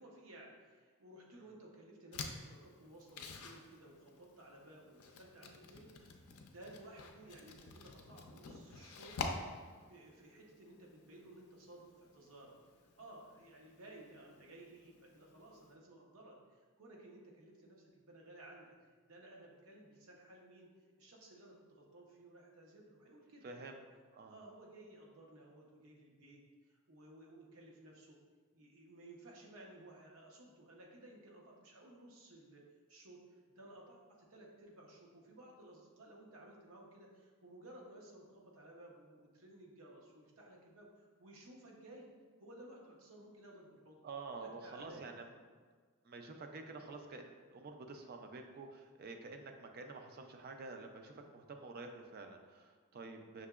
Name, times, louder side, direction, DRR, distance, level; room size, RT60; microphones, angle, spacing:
voice 1, 0.0-9.2 9.8-12.6 13.0-18.7 19.1-20.7 21.0-23.7 24.3-28.2 28.5-42.1 42.4-44.0 44.4-45.1, right 1 dB, 70° right, -1 dB, 0.8 m, -57 dB
sound 1, 2.1-15.7, left 4 dB, 80° left, 0.4 m, -49 dB
voice 2, 23.4-23.8 24.1-24.4 44.0-45.4 46.0-53.5, right 3 dB, 45° right, 4 dB, 0.4 m, -49 dB
5.9 x 2.8 x 2.3 m, 1.5 s
head